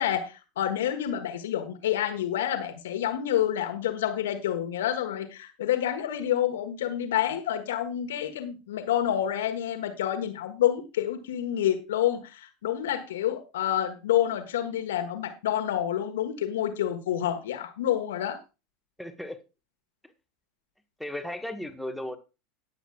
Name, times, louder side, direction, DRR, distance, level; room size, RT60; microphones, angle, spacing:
voice 1, 0.0-18.4, left 11 dB, 65° left, 6 dB, 1.5 m, -28 dB
voice 2, 19.0-19.4 21.0-22.2, left 1 dB, ahead, 6 dB, 1.5 m, -35 dB
18.5 x 7.9 x 2.4 m, 0.29 s
figure-of-eight pair, 80°, 0 cm